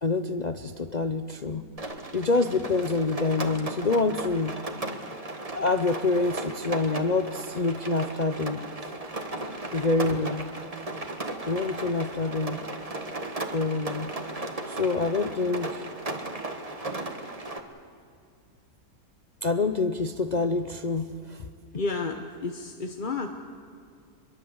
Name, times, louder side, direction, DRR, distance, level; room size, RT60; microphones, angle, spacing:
voice 1, 0.0-4.5 5.5-8.6 9.7-10.5 11.5-12.6 13.5-14.1 14.6-15.9 19.4-21.4, left 3 dB, 65° left, 7 dB, 0.4 m, -27 dB
Rain, 1.8-17.6, right 2 dB, 20° right, 1.5 m, -36 dB
voice 2, 21.7-23.3, left 3 dB, 35° left, 5 dB, 1.0 m, -32 dB
24.5 x 22.5 x 8.0 m, 2.3 s
omnidirectional pair, 1.9 m